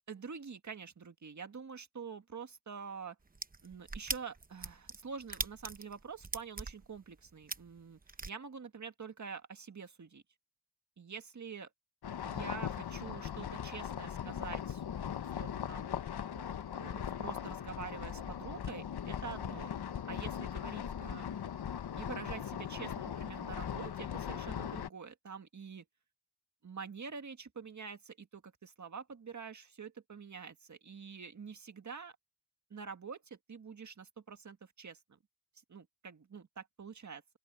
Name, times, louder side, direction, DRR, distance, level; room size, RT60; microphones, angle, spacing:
voice 1, 0.1-3.2 3.6-8.0 8.3-10.2 11.0-11.7 12.2-14.8 15.2-15.9 16.3-16.5 16.7-19.7 20.1-21.3 22.0-25.8 26.6-32.2 32.7-35.2 35.7-37.2, right 6 dB, 45° right, 1.7 m, -46 dB
sound 1, 3.3-8.3, right 3 dB, 20° right, 0.8 m, -40 dB
sound 2, 12.0-24.9, left 9 dB, 70° left, 1.0 m, -39 dB
open air
wide cardioid pair, 155°, 40 cm